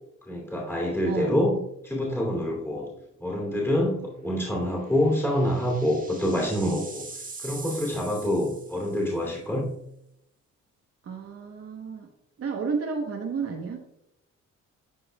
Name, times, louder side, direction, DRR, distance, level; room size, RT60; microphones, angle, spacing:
voice 1, 0.3-2.9 3.2-7.1 7.4-9.7, left 1 dB, 10° left, -2 dB, 2.6 m, -26 dB
voice 2, 1.0-1.4 11.1-12.1 12.4-13.8, right 5 dB, 50° right, 1 dB, 1.0 m, -31 dB
sound 1, 3.0-3.1 4.5-9.2, right 3 dB, 25° right, 1.7 m, -43 dB
12.0 x 4.8 x 2.2 m, 0.78 s
cardioid pair, 90°, 30 cm